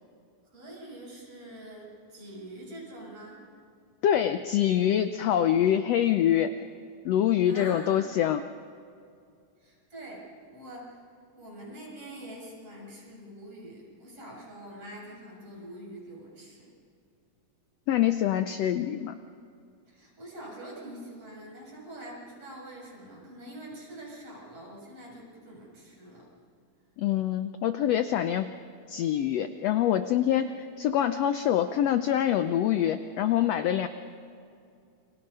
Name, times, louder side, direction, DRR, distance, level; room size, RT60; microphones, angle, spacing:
voice 1, 0.5-3.5 7.4-8.2 9.6-11.0 11.4-16.7 19.9-26.3, right 1 dB, 45° right, -3 dB, 7.9 m, -45 dB
voice 2, 4.0-6.5 7.0-8.4 17.9-19.1 27.0-28.5 28.9-33.9, left 10 dB, 75° left, 9 dB, 1.5 m, -25 dB
30.0 x 25.5 x 5.5 m, 2.4 s
omnidirectional pair, 3.6 m